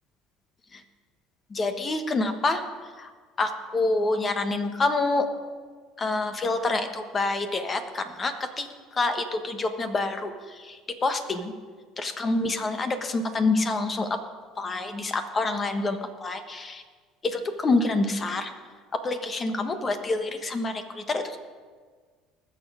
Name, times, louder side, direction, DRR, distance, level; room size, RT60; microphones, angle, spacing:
voice 1, 1.5-2.6 3.0-3.1 3.4-5.3 6.0-8.7 8.9-11.5 12.0-14.2 14.6-16.8 17.2-18.5 18.9-21.4, left 3 dB, 30° left, 8 dB, 1.3 m, -27 dB
19.5 x 6.8 x 5.0 m, 1.5 s
supercardioid pair, 80°, 0 cm